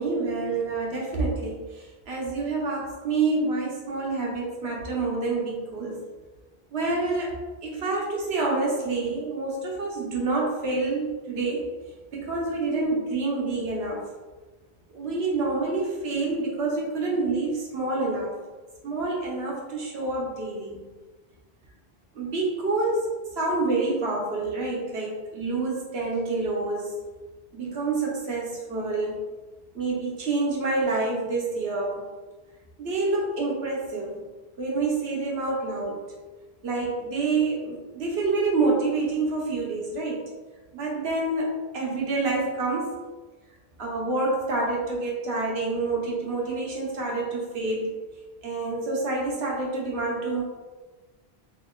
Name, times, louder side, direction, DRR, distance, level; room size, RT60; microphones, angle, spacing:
voice 1, 0.0-6.0 6.7-7.3 7.6-11.6 12.1-14.0 14.9-18.4 18.8-20.9 22.1-23.1 23.4-26.9 27.5-29.2 29.7-32.0 32.8-34.2 34.6-36.0 36.6-40.3 40.7-42.9 43.8-48.0 48.4-50.4, right 3 dB, 80° right, -3 dB, 1.1 m, -27 dB
3.8 x 2.9 x 2.3 m, 1.2 s
omnidirectional pair, 1.1 m